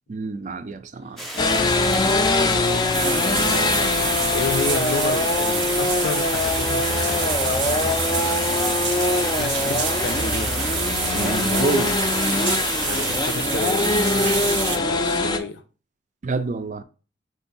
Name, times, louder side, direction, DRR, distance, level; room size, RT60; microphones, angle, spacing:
voice 1, 0.1-1.5 11.1-12.0 16.2-16.8, right 3 dB, 45° right, 0.4 m, -28 dB
sound 1, 1.2-13.2, equal, ahead, 0.7 m, -34 dB
sound 2, 1.4-15.4, left 3 dB, 25° left, 0.4 m, -23 dB
sound 3, 2.9-14.8, right 8 dB, 85° right, 0.6 m, -28 dB
voice 2, 3.2-8.0 9.3-10.6 12.8-15.6, left 4 dB, 90° left, 0.6 m, -31 dB
4.6 x 2.6 x 3.9 m
head